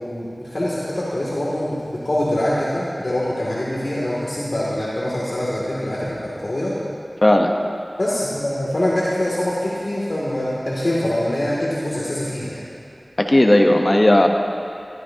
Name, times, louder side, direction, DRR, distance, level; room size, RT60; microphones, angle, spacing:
voice 1, 0.0-6.7 8.0-12.6, left 1 dB, 70° left, -7 dB, 2.6 m, -24 dB
voice 2, 13.2-14.3, left 1 dB, 40° left, 3 dB, 1.1 m, -14 dB
22.0 x 15.0 x 2.9 m, 2.5 s
wide cardioid pair, 50°, 0 cm